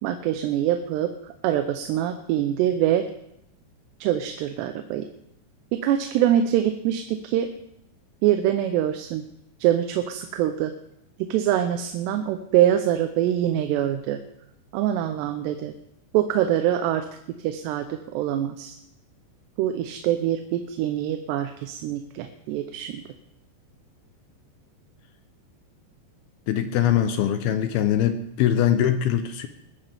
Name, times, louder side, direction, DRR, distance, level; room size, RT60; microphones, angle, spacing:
voice 1, 0.0-1.1 1.4-3.1 4.0-5.1 5.7-7.5 8.2-9.2 9.6-10.7 11.2-14.2 14.7-15.7 16.1-17.1 17.4-18.8 19.6-23.0, right 11 dB, 80° right, 7 dB, 2.9 m, -24 dB
voice 2, 26.5-29.5, left 10 dB, 75° left, 8 dB, 2.5 m, -22 dB
22.0 x 14.0 x 3.5 m, 0.77 s
omnidirectional pair, 4.9 m